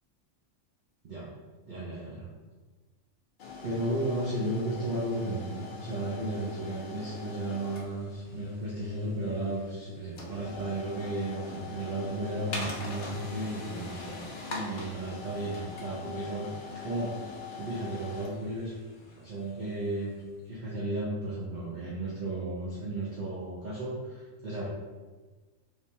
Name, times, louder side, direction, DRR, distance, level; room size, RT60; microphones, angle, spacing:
voice 1, 1.6-2.3 3.6-14.2 14.4-17.2 17.6-18.7 19.0-20.1 20.5-24.7, right 1 dB, 50° right, -6 dB, 0.6 m, -34 dB
sound 1, 3.4-20.3, left 4 dB, 55° left, 0.6 m, -43 dB
3.3 x 3.2 x 2.9 m, 1.3 s
omnidirectional pair, 1.3 m